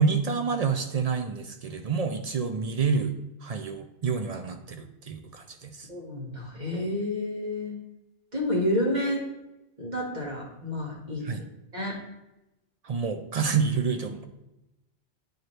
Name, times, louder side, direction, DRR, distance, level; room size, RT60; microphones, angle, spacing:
voice 1, 0.0-3.1 3.4-5.9 11.2-11.5 12.8-14.2, right 5 dB, 60° right, 6 dB, 0.4 m, -28 dB
voice 2, 5.9-7.7 8.3-9.3 9.8-11.4 11.7-12.0, left 1 dB, 40° right, -3 dB, 1.8 m, -29 dB
9.1 x 4.4 x 3.2 m, 0.94 s
omnidirectional pair, 1.2 m